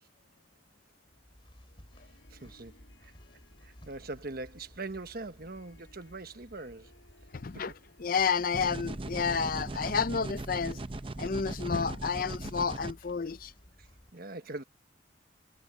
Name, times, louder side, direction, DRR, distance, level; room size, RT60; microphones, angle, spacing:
sound 1, 1.1-14.1, equal, 30° left, 2.6 m, -56 dB
Harp, 1.7-9.6, left 2 dB, 70° left, 7.7 m, -65 dB
voice 1, 2.3-3.1 3.6-6.9 7.5-7.6 13.8-13.9 14.1-14.6, right 2 dB, 50° right, 1.2 m, -42 dB
voice 2, 7.3-7.7 8.0-10.8 11.2-13.5, left 5 dB, 45° left, 0.6 m, -30 dB
sound 2, 8.5-12.9, right 2 dB, 30° right, 0.6 m, -38 dB
head